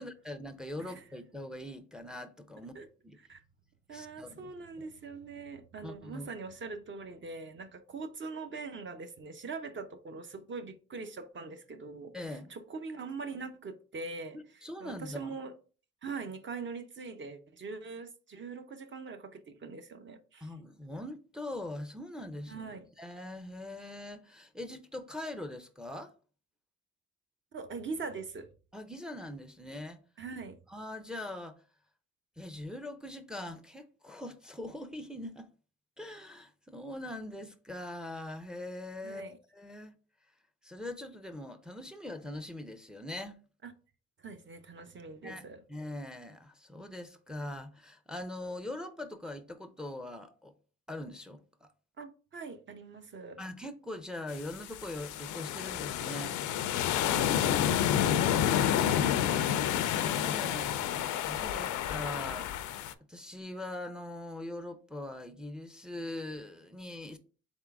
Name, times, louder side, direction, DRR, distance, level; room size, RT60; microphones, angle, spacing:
voice 1, 0.0-2.7 3.0-3.2 3.9-4.9 5.8-6.3 12.1-12.5 14.3-15.3 20.4-22.7 23.0-26.1 28.7-30.0 30.7-31.6 32.4-35.5 36.0-39.9 40.6-43.4 45.2-45.4 45.7-50.5 50.9-51.7 53.4-56.3 59.9-67.2, left 1 dB, ahead, 0.5 m, -42 dB
voice 2, 3.9-15.5 16.0-20.5 22.5-22.9 27.5-28.5 30.2-30.6 39.0-39.4 43.6-43.7 44.2-45.6 52.0-53.4 57.8-59.7, right 4 dB, 40° right, 0.7 m, -42 dB
sound 1, 54.3-62.9, left 10 dB, 75° left, 0.5 m, -29 dB
4.0 x 3.6 x 3.5 m
cardioid pair, 90°, 30 cm